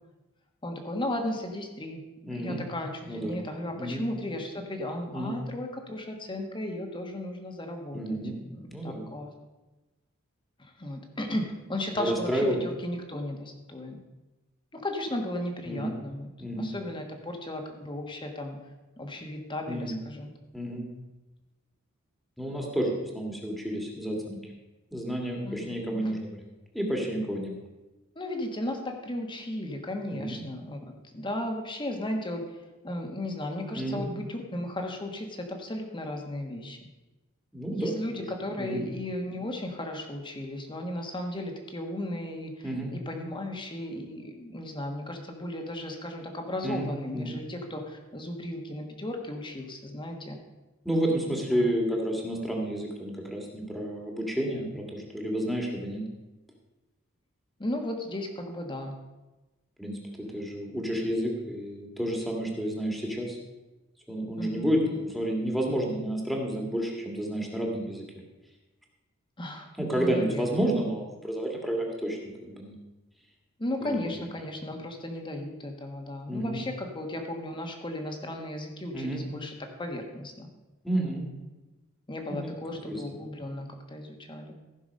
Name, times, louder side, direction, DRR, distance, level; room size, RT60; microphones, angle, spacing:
voice 1, 0.6-2.0 2.3-8.2 8.4-9.3 10.6-14.0 14.7-16.3 16.5-18.6 19.0-20.3 25.4-26.1 28.1-30.8 31.1-32.4 32.8-36.8 37.7-50.4 51.0-51.7 57.6-58.9 64.4-65.0 69.4-70.6 73.6-80.5 82.1-84.5, left 1 dB, 20° left, 3 dB, 1.4 m, -35 dB
voice 2, 2.2-2.6 3.1-3.4 3.7-4.0 5.1-5.3 7.9-8.4 8.7-9.1 12.0-12.6 15.7-16.0 16.4-16.7 19.7-20.0 20.5-20.9 22.4-24.4 24.9-26.4 26.7-27.6 30.1-30.4 33.8-34.0 37.5-37.9 38.6-38.8 42.6-42.9 46.6-46.9 47.1-47.3 50.8-56.0 59.8-63.4 64.1-68.0 69.8-72.8 73.8-74.1 76.3-76.6 78.9-79.2 80.8-81.3 82.4-82.6 82.9-83.0, right 1 dB, ahead, -1 dB, 1.9 m, -30 dB
15.0 x 6.0 x 5.3 m, 1.1 s
head